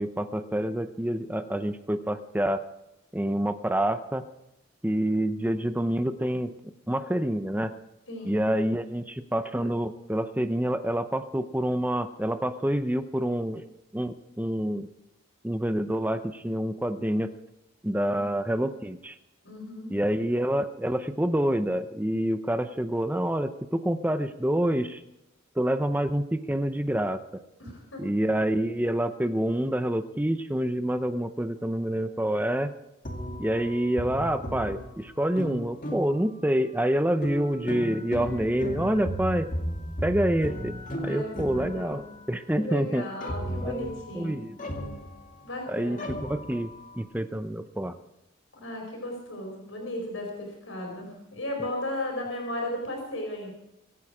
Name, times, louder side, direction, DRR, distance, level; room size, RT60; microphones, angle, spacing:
voice 1, 0.0-2.6 3.1-4.2 4.8-6.5 6.9-7.7 8.2-13.7 13.9-14.9 15.4-17.3 17.8-19.2 19.9-25.0 25.6-27.2 28.0-32.7 33.4-39.5 40.0-40.7 41.0-42.0 42.3-43.1 43.6-44.5 45.7-48.0, right 1 dB, 10° right, 9 dB, 0.6 m, -27 dB
voice 2, 8.1-8.4 18.0-18.3 19.4-19.9 27.6-28.1 41.0-42.0 42.5-44.4 45.4-46.1 48.5-53.5, left 1 dB, 75° left, 0 dB, 5.0 m, -35 dB
sound 1, 33.1-36.5 37.2-42.3 43.2-45.7 46.0-47.0, equal, 40° left, 2.3 m, -35 dB
24.0 x 9.2 x 4.9 m, 0.89 s
head